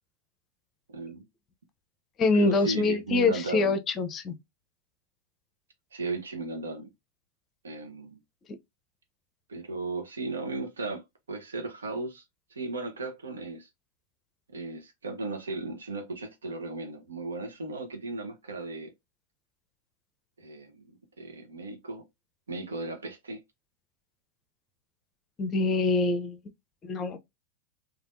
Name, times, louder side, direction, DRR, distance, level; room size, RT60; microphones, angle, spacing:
voice 1, 0.9-1.2 2.3-3.8 5.9-6.9 7.6-8.2 9.5-11.0 11.3-12.2 12.5-13.7 14.5-18.9 20.4-22.0 22.5-23.4, right 3 dB, 75° right, 0.8 m, -36 dB
voice 2, 2.2-4.3 25.4-26.4 26.8-27.2, left 3 dB, 30° left, 0.6 m, -25 dB
3.4 x 2.4 x 2.5 m
figure-of-eight pair, 90°, 0 cm